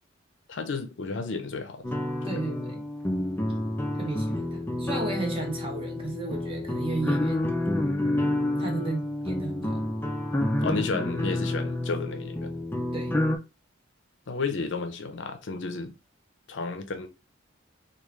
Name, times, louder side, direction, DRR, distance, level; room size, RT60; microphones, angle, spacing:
voice 1, 0.5-1.9 2.2-2.4 10.6-12.5 14.3-15.9 16.5-17.1, left 4 dB, 65° left, 0.5 m, -32 dB
sound 1, 1.8-13.4, left 1 dB, 10° left, 0.4 m, -29 dB
voice 2, 2.2-2.8 4.0-7.5 8.6-9.8 12.9-13.2, right 3 dB, 30° right, 1.0 m, -34 dB
3.1 x 2.4 x 3.5 m
head